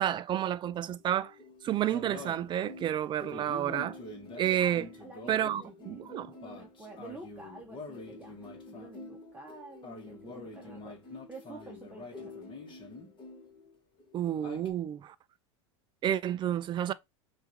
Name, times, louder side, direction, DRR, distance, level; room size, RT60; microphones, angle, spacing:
voice 1, 0.0-1.3 1.6-4.0 4.4-4.9 5.3-6.3 14.1-15.1 16.0-16.9, right 11 dB, 30° right, 0.4 m, -30 dB
sound 1, 0.6-13.7 14.0-14.7, left 3 dB, 30° left, 1.4 m, -46 dB
voice 2, 4.4-6.1 6.4-12.4, right 3 dB, 10° right, 1.1 m, -49 dB
5.6 x 2.6 x 2.8 m
hypercardioid pair, 105°, 16 cm